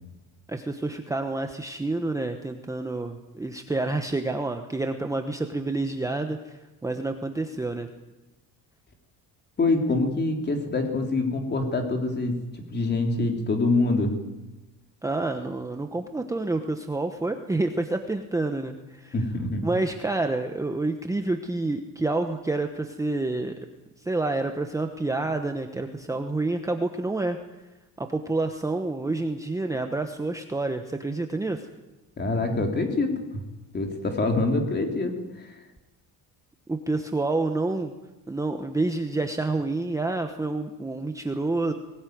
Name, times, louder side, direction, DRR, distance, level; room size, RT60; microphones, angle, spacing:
voice 1, 0.5-7.9 15.0-19.1 19.6-23.5 24.0-27.4 28.0-31.7 36.7-37.9 38.3-41.7, right 2 dB, 10° right, 5 dB, 1.0 m, -28 dB
voice 2, 9.6-12.4 12.7-14.1 19.1-19.7 32.2-33.4 33.7-35.6, left 2 dB, 30° left, 4 dB, 3.4 m, -25 dB
20.5 x 19.0 x 9.4 m, 1.0 s
cardioid pair, 160°, 36 cm